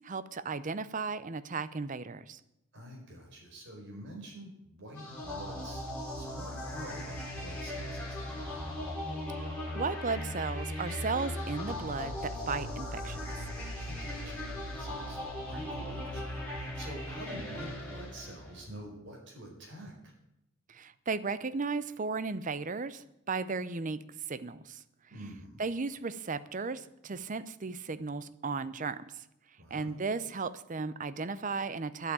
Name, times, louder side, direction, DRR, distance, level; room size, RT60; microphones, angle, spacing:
voice 1, 0.0-2.4 9.4-13.2 20.7-24.0 24.3-24.8 25.6-29.0 29.7-32.1, right 4 dB, 35° right, 14 dB, 0.6 m, -35 dB
voice 2, 2.7-8.6 13.8-15.2 15.5-20.1 25.1-25.6 29.6-30.0, right 1 dB, 55° right, 0 dB, 4.6 m, -47 dB
sound 1, 5.0-18.6, left 1 dB, 5° left, 4.6 m, -38 dB
11.0 x 8.4 x 9.0 m, 0.83 s
head